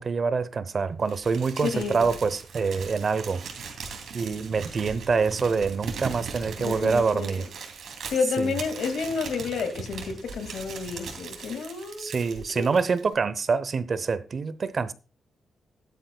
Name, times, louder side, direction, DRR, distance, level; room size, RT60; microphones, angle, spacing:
voice 1, 0.0-3.4 4.1-7.5 8.4-8.5 12.0-14.9, right 5 dB, 40° right, 0.7 m, -26 dB
Crumpling crinkling, 1.1-13.1, right 5 dB, 70° right, 2.8 m, -39 dB
voice 2, 1.6-2.0 6.6-7.5 8.1-12.1 12.5-12.8, left 5 dB, 80° left, 2.2 m, -30 dB
15.0 x 11.5 x 2.3 m
wide cardioid pair, 155°, 0 cm